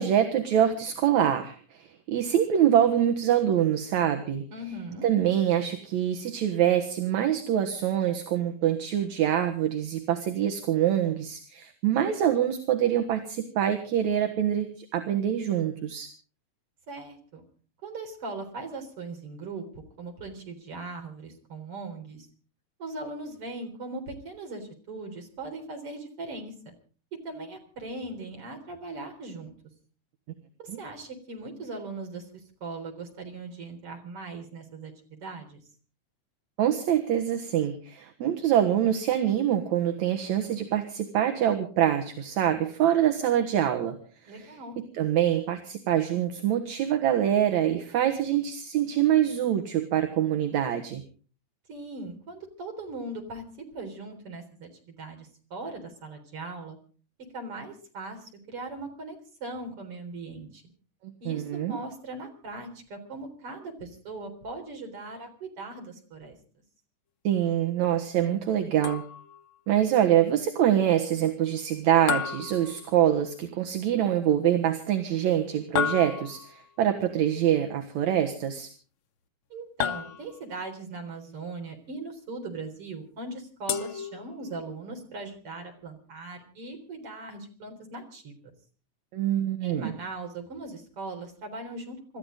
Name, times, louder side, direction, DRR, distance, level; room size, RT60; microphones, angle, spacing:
voice 1, 0.0-4.5 5.0-16.1 30.7-30.8 36.6-44.0 44.2-51.0 61.0-61.8 67.2-69.0 69.7-78.7 89.1-89.9, right 10 dB, 65° right, 6 dB, 2.6 m, -25 dB
voice 2, 4.5-5.0 16.9-17.4 17.8-19.7 20.0-22.3 22.8-26.7 27.2-29.5 30.6-32.3 32.6-35.6 44.3-44.7 51.7-53.4 53.7-56.8 57.3-60.6 61.2-66.3 79.5-88.4 89.6-92.2, right 3 dB, 45° right, 4 dB, 4.7 m, -39 dB
sound 1, 68.8-69.5 72.1-73.3 75.8-76.6 79.8-80.6 83.7-84.7, left 8 dB, 75° left, 1.1 m, -32 dB
27.5 x 13.5 x 3.9 m, 0.40 s
omnidirectional pair, 3.6 m